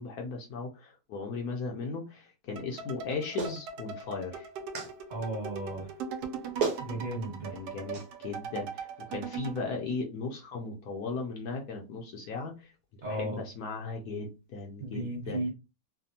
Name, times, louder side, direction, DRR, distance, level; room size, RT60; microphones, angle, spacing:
voice 1, 0.0-4.5 7.5-12.7 13.0-15.5, left 4 dB, 70° left, 1 dB, 1.1 m, -37 dB
sound 1, 2.6-9.7, right 6 dB, 85° right, 1.2 m, -40 dB
Clapping, 3.4-3.6 4.7-4.9 6.2-6.3 6.6-6.9 7.9-8.1, right 5 dB, 65° right, 1.2 m, -31 dB
voice 2, 5.1-5.9 6.8-7.5 13.0-13.4 14.8-15.5, right 1 dB, 45° right, -1 dB, 1.4 m, -34 dB
3.3 x 2.1 x 2.7 m, 0.28 s
omnidirectional pair, 1.8 m